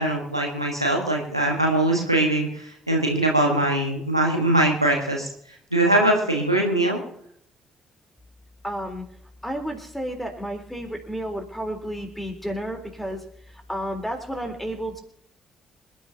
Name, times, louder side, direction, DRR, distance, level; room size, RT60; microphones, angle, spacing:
voice 1, 0.0-5.3 5.7-7.0, right 1 dB, 90° right, 0 dB, 1.5 m, -22 dB
voice 2, 8.6-9.1 9.4-15.0, equal, 5° left, 4 dB, 3.7 m, -32 dB
26.5 x 10.5 x 2.9 m, 0.70 s
figure-of-eight pair, 45°, 2 cm